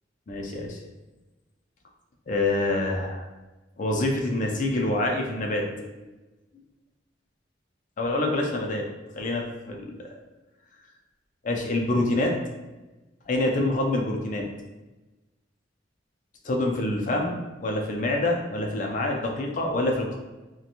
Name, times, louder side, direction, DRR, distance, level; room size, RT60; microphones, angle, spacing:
voice 1, 0.3-0.8 2.3-3.3 3.8-6.0 8.0-8.9 9.1-10.1 11.4-12.3 13.3-14.5 16.4-20.2, left 2 dB, 40° left, 1 dB, 0.4 m, -26 dB
2.8 x 2.2 x 2.5 m, 1.1 s
head